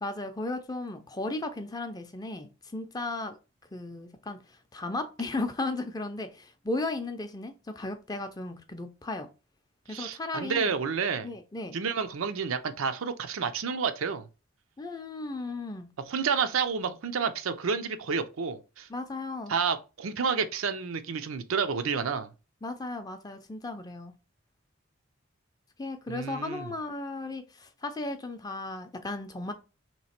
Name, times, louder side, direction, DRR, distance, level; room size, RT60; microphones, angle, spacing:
voice 1, 0.0-3.4 3.7-9.3 9.9-10.7 11.2-11.8 14.8-15.9 18.9-19.5 22.6-24.1 25.8-29.5, left 2 dB, 20° left, 0.4 m, -35 dB
voice 2, 9.9-11.3 11.7-14.3 16.1-18.9 19.5-22.3 26.1-26.7, right 5 dB, 85° right, 0.5 m, -30 dB
3.2 x 3.0 x 4.3 m
head